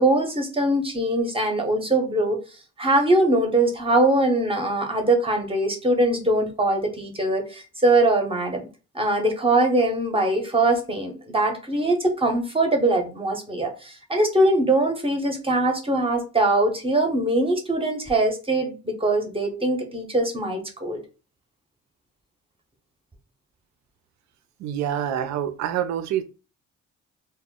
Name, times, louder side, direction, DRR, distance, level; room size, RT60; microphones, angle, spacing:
voice 1, 0.0-2.4 2.8-8.7 8.9-21.0, right 2 dB, 20° right, 0.6 m, -22 dB
voice 2, 24.6-26.2, right 10 dB, 65° right, 0.5 m, -26 dB
2.1 x 2.0 x 3.6 m
cardioid pair, 90°, 30 cm